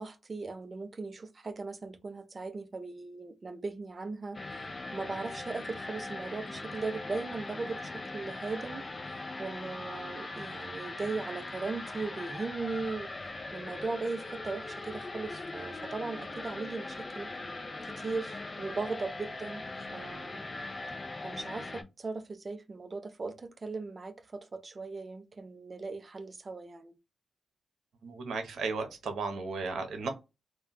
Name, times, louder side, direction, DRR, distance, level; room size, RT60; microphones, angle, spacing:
voice 1, 0.0-13.1 13.5-17.3 17.8-19.6 19.9-20.4 21.2-27.0, right 3 dB, 35° right, 0.5 m, -38 dB
sound 1, 4.3-21.8, left 2 dB, 30° left, 0.4 m, -40 dB
voice 2, 28.0-30.1, right 4 dB, 80° right, 0.7 m, -35 dB
2.2 x 2.2 x 3.7 m
cardioid pair, 110°, 0 cm